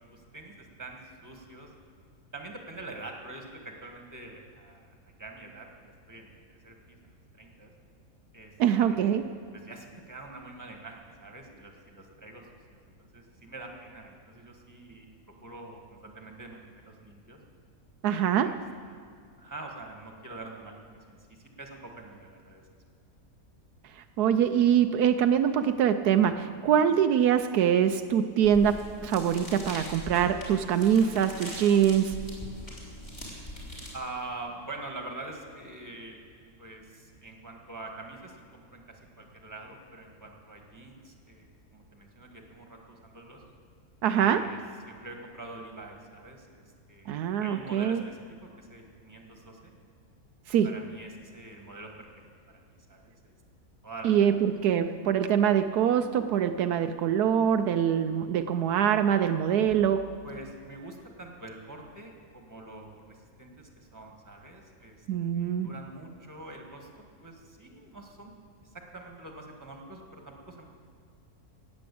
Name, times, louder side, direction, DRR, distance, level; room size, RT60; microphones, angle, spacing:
voice 1, 0.1-1.7 2.3-6.4 6.6-7.7 8.3-8.5 8.8-9.2 9.5-15.1 15.4-17.4 18.4-18.6 19.4-22.6 33.9-36.2 36.6-43.4 44.1-44.6 44.8-49.7 50.6-52.1 52.5-53.4 53.8-54.4 60.2-65.0 65.3-66.9 67.2-68.3 68.6-70.7, right 2 dB, 10° right, 2 dB, 1.7 m, -45 dB
voice 2, 8.6-9.3 18.0-18.6 24.0-28.8 29.0-32.2 44.0-44.5 47.1-48.0 50.5-50.8 54.0-60.2 65.1-65.7, right 9 dB, 80° right, 9 dB, 1.1 m, -24 dB
sound 1, 28.4-34.0, equal, 25° left, 3.6 m, -42 dB
18.0 x 7.6 x 8.4 m, 2.2 s
omnidirectional pair, 1.7 m